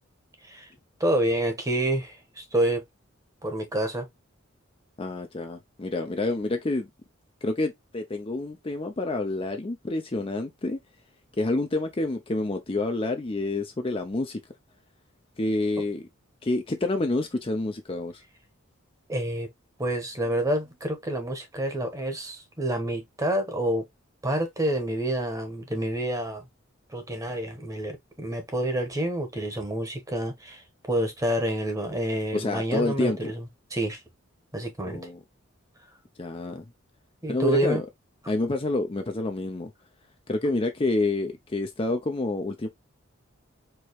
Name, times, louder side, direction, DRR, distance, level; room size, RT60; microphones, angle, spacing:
voice 1, 1.0-2.8 3.4-4.1 19.1-19.5 19.8-23.9 24.2-26.5 26.9-34.0 34.5-35.1 37.2-37.8, right 1 dB, 15° right, 1.1 m, -28 dB
voice 2, 5.0-6.9 7.4-10.8 11.4-14.4 15.4-16.0 16.4-18.2 32.3-33.3 34.9-35.2 36.2-36.6 37.3-37.8 38.3-39.7 40.3-42.7, left 2 dB, 25° left, 0.5 m, -28 dB
4.7 x 3.0 x 3.0 m
head